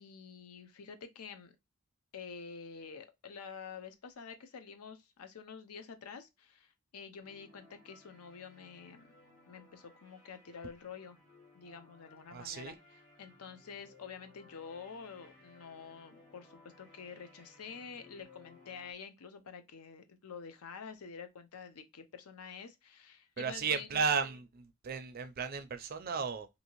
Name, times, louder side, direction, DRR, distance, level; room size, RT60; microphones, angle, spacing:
voice 1, 0.0-1.5 2.1-9.1 9.5-11.2 11.5-12.7 13.2-24.0, left 6 dB, 85° left, 0.5 m, -48 dB
sound 1, 7.2-18.9, left 2 dB, 60° left, 1.4 m, -61 dB
voice 2, 12.3-12.7 23.4-26.5, right 5 dB, 40° right, 0.4 m, -34 dB
2.7 x 2.6 x 2.9 m
head